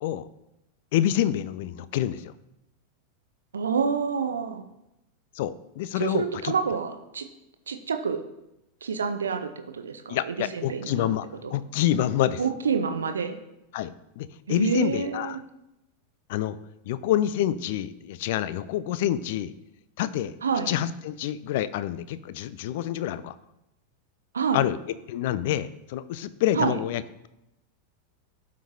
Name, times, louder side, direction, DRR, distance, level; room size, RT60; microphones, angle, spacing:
voice 1, 0.9-2.3 5.3-6.5 10.1-12.4 13.7-15.4 16.3-16.6 16.9-19.5 20.0-20.3 20.7-23.4 24.5-24.8 25.1-27.0, left 12 dB, 50° left, 15 dB, 0.4 m, -27 dB
voice 2, 3.5-4.6 6.0-7.3 7.7-8.2 8.8-11.1 11.4-11.5 12.4-13.4 14.5-15.4 20.4-20.7 24.3-24.6 26.5-26.8, right 6 dB, 70° right, 8 dB, 0.6 m, -28 dB
12.5 x 5.2 x 2.7 m, 0.90 s
figure-of-eight pair, 90°, 0 cm